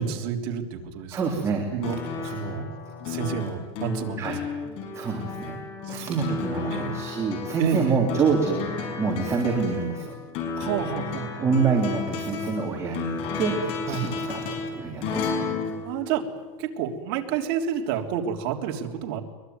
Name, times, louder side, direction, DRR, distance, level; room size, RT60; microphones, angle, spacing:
voice 1, 0.0-1.2 1.7-2.7 3.0-4.3 5.8-6.4 6.7-6.9 7.6-8.1 10.5-11.5 13.9-14.0 15.8-16.3 16.6-19.2, right 8 dB, 55° right, 2 dB, 3.4 m, -30 dB
voice 2, 1.1-1.6 2.4-2.6 4.2-4.4 4.9-5.6 5.9-10.1 11.4-14.4 14.7-15.5, right 5 dB, 20° right, 0 dB, 3.4 m, -26 dB
sound 1, 1.8-16.7 18.0-18.1, left 5 dB, 40° left, 6.0 m, -33 dB
22.5 x 22.0 x 9.5 m, 1.3 s
supercardioid pair, 160°, 15 cm